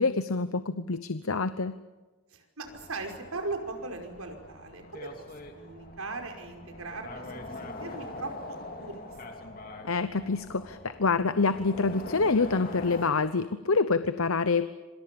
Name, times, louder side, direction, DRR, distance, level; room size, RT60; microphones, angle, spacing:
voice 1, 0.0-1.7 9.8-14.7, left 4 dB, 85° left, 12 dB, 0.9 m, -26 dB
voice 2, 2.3-5.3 5.6-9.0 9.3-9.5, right 3 dB, 90° right, 4 dB, 5.3 m, -39 dB
sound 1, 2.6-13.1, left 2 dB, 40° left, 2.9 m, -43 dB
27.0 x 26.0 x 7.0 m, 1.2 s
head